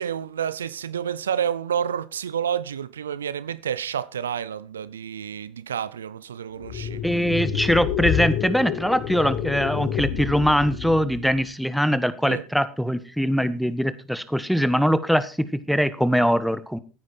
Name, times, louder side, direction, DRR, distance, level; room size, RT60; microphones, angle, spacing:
voice 1, 0.0-7.0 12.3-12.4, right 8 dB, 85° right, 0.5 m, -29 dB
sound 1, 6.6-11.5, left 9 dB, 60° left, 1.3 m, -28 dB
voice 2, 7.0-16.8, equal, ahead, 1.3 m, -22 dB
14.0 x 9.6 x 4.3 m
hypercardioid pair, 75°, 0 cm